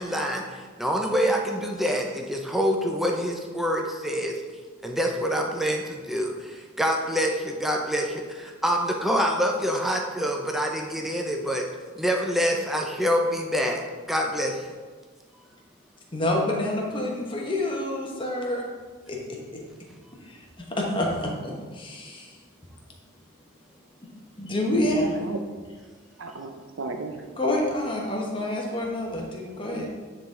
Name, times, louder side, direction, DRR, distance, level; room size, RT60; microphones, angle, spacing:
voice 1, 0.0-4.4 4.8-11.7 12.0-13.8 14.1-14.7, equal, ahead, 0 dB, 0.5 m, -26 dB
voice 2, 16.1-18.6 19.1-19.4 20.2-20.4 20.7-22.4 24.4-25.2 27.4-29.9, left 1 dB, 25° left, -1 dB, 1.1 m, -27 dB
voice 3, 24.9-25.4 26.2-27.3 29.7-29.9, right 3 dB, 70° right, 5 dB, 0.5 m, -35 dB
9.5 x 3.9 x 3.7 m, 1.5 s
head